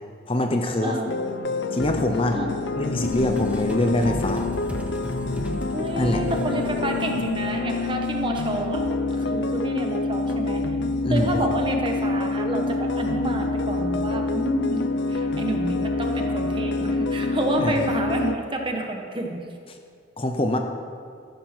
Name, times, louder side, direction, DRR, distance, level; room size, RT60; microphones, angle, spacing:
voice 1, 0.3-1.0 1.7-2.4 2.8-4.4 6.0-6.2 11.0-11.3 17.6-17.8 20.2-20.6, left 1 dB, 30° left, 5 dB, 0.7 m, -24 dB
voice 2, 0.8-1.2 2.3-2.5 5.7-8.8 9.2-10.8 11.1-19.4, right 1 dB, 25° right, 2 dB, 1.3 m, -29 dB
sound 1, 1.1-18.4, left 3 dB, 65° left, 0.6 m, -27 dB
sound 2, 3.0-8.3, equal, 5° right, 0.8 m, -35 dB
14.0 x 12.0 x 4.5 m, 2.4 s
head